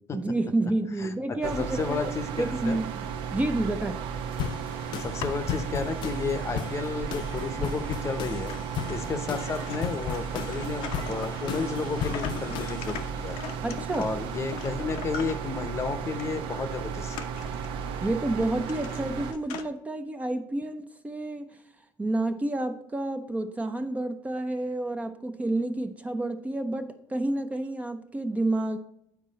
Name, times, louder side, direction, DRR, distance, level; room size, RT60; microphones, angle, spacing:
voice 1, 0.1-2.0 2.4-4.0 13.6-14.1 18.0-21.6 22.0-28.8, right 2 dB, 15° right, 7 dB, 0.6 m, -29 dB
voice 2, 1.0-2.8 5.0-8.5 8.9-13.4 14.0-17.3, left 4 dB, 30° left, 10 dB, 0.8 m, -32 dB
sound 1, 1.4-19.3, right 7 dB, 75° right, 0.7 m, -34 dB
sound 2, 4.4-13.1, left 10 dB, 60° left, 0.4 m, -36 dB
sound 3, 4.8-5.6 6.2-6.3 7.2-7.3 7.8-7.9 8.2-15.8 16.2-16.4 16.7-19.6, left 8 dB, 85° left, 0.8 m, -41 dB
9.3 x 4.6 x 4.1 m, 0.77 s
cardioid pair, 120°, 9 cm